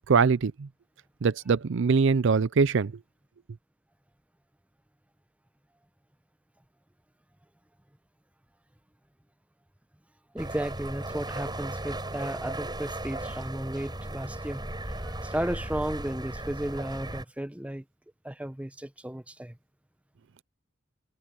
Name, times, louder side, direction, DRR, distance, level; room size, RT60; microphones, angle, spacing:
voice 1, 0.1-0.7 1.2-2.9, right 5 dB, 65° right, 0.5 m, -23 dB
voice 2, 10.3-14.6 15.0-17.8 18.2-19.6, right 1 dB, 5° right, 0.8 m, -34 dB
sound 1, 10.4-17.2, right 1 dB, 20° right, 7.2 m, -36 dB
head